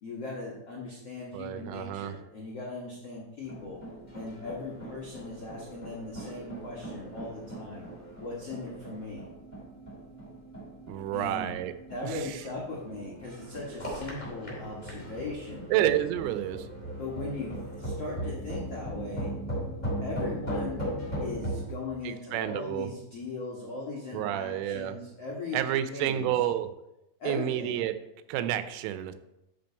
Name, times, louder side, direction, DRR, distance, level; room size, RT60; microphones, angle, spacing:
voice 1, 0.0-3.8 4.1-7.9 8.2-9.2 11.1-11.5 11.9-16.0 17.0-19.3 20.0-20.9 21.2-25.6 25.9-26.5 27.2-27.8, left 3 dB, 75° left, -4 dB, 1.4 m, -39 dB
voice 2, 1.3-2.2 10.9-11.7 12.0-12.2 15.7-16.7 22.0-22.9 24.1-25.0 25.5-26.7 27.3-28.0 28.3-29.2, right 12 dB, 90° right, 10 dB, 3.2 m, -29 dB
sound 1, 3.4-21.7, right 1 dB, 10° left, 3.3 m, -38 dB
12.5 x 5.8 x 4.5 m, 0.89 s
omnidirectional pair, 5.5 m